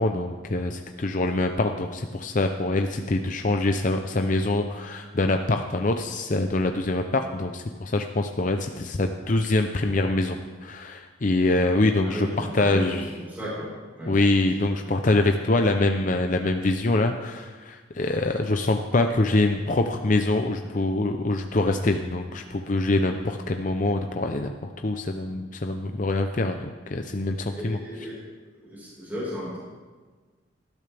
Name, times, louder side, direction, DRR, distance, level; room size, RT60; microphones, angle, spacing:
voice 1, 0.0-13.1 14.1-27.8, left 2 dB, 40° left, 5 dB, 0.6 m, -24 dB
voice 2, 12.0-13.7 14.0-14.2 27.5-28.2 28.6-29.6, equal, 10° right, -8 dB, 4.7 m, -34 dB
19.0 x 12.5 x 3.4 m, 1.4 s
head